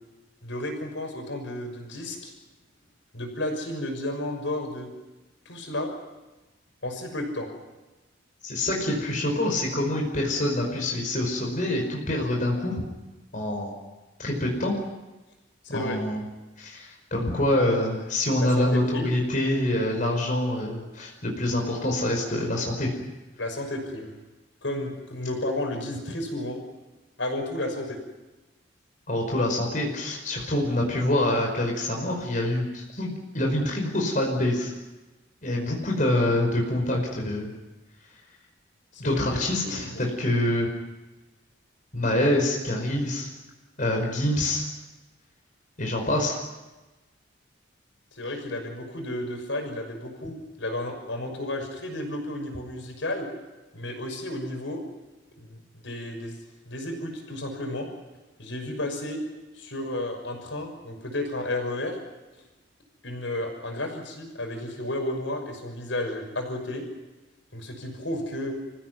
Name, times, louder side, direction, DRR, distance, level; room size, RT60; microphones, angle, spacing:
voice 1, 0.4-2.3 3.1-4.9 5.4-5.9 6.8-7.5 15.6-16.0 18.4-19.1 23.4-24.1 24.6-26.6 27.2-28.0 38.9-40.0 48.2-53.3 53.7-54.8 55.4-56.4 56.7-57.9 58.4-59.2 59.5-62.0 63.0-66.8 67.5-68.5, left 1 dB, 75° left, 3 dB, 6.2 m, -32 dB
voice 2, 8.4-12.7 13.3-13.7 14.2-14.7 15.7-16.2 16.6-22.9 29.1-34.7 35.4-37.5 39.0-40.7 41.9-43.3 43.8-44.6 45.8-46.4, left 1 dB, 45° left, 0 dB, 5.2 m, -26 dB
29.0 x 16.0 x 9.5 m, 1.1 s
head